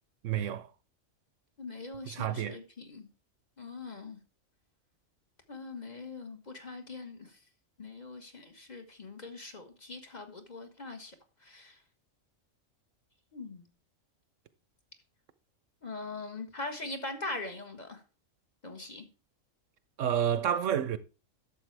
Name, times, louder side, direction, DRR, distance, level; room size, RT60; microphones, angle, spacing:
voice 1, 0.2-0.7 2.1-2.6 20.0-21.0, right 9 dB, 70° right, 1.0 m, -29 dB
voice 2, 1.6-3.1 3.6-4.2 5.5-7.4 7.8-11.1 11.4-11.8 13.3-13.7 15.8-18.0 18.6-19.0, left 3 dB, 35° left, 1.4 m, -42 dB
11.5 x 7.2 x 3.3 m
omnidirectional pair, 1.4 m